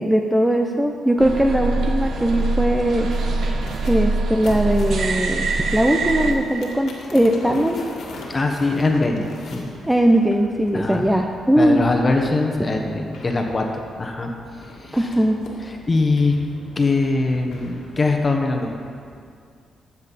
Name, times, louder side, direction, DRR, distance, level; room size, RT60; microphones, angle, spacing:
voice 1, 0.0-3.1 3.8-7.8 9.9-11.9 14.9-15.4, right 1 dB, 5° right, 3 dB, 0.6 m, -19 dB
sound 1, 1.2-6.3, right 3 dB, 65° right, 0.9 m, -23 dB
sound 2, 1.7-19.2, left 2 dB, 75° left, 1.9 m, -41 dB
voice 2, 8.3-9.3 9.5-9.7 10.7-11.1 11.6-14.3 14.8-15.1 15.7-16.4 16.7-18.7, left 3 dB, 30° left, 3 dB, 1.2 m, -22 dB
13.5 x 7.5 x 4.2 m, 2.2 s
cardioid pair, 100°, 0 cm